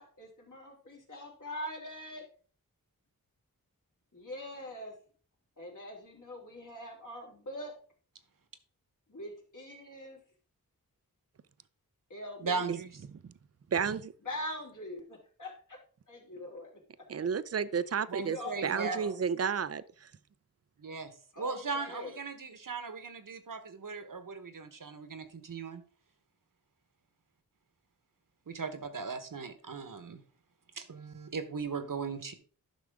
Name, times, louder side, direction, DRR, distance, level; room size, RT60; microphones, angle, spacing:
voice 1, 0.0-2.2 4.1-4.9 5.6-7.7 9.1-10.2 12.1-12.7 14.2-15.8 16.1-16.8 18.2-19.1 21.3-22.2, left 1 dB, 60° left, 3.1 m, -43 dB
voice 2, 12.4-12.9 18.1-19.0 20.8-25.8 28.5-30.2 30.7-32.3, right 5 dB, 65° right, 1.2 m, -38 dB
voice 3, 13.7-14.1 17.1-20.1, right 6 dB, 45° right, 0.5 m, -32 dB
10.5 x 6.1 x 3.6 m
wide cardioid pair, 55°, 35 cm